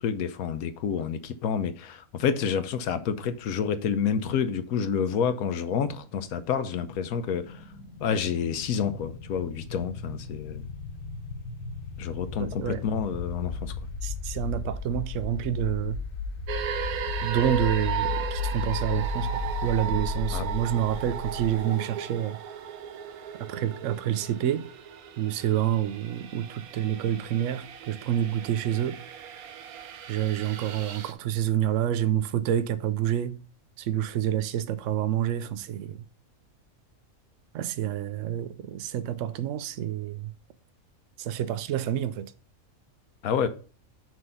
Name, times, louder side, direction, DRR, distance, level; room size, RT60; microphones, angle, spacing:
voice 1, 0.0-7.6 8.0-10.6 12.0-13.7 20.3-20.5 43.2-43.5, left 7 dB, 85° left, 1.2 m, -29 dB
sound 1, 5.9-21.6, left 4 dB, 65° left, 1.4 m, -35 dB
voice 2, 12.4-12.8 14.0-16.0 17.2-22.4 23.5-24.7 25.2-29.0 30.1-33.4 33.8-36.1 37.5-40.3 41.2-42.3, right 11 dB, 65° right, 0.9 m, -28 dB
sound 2, 16.5-31.1, right 9 dB, 85° right, 1.2 m, -36 dB
6.1 x 3.7 x 5.5 m
omnidirectional pair, 1.5 m